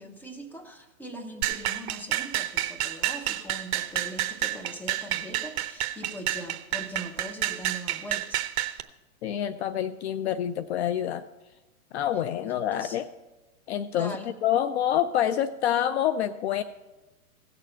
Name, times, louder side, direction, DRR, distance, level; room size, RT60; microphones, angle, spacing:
voice 1, 0.0-8.4 12.4-13.0 13.9-14.3, right 1 dB, 5° left, 4 dB, 0.9 m, -41 dB
sound 1, 1.4-8.8, right 13 dB, 50° right, 0.8 m, -29 dB
voice 2, 9.2-11.2 11.9-13.1 13.7-16.6, left 10 dB, 50° left, 13 dB, 0.5 m, -27 dB
16.5 x 6.8 x 5.6 m, 1.1 s
hypercardioid pair, 125°, 43 cm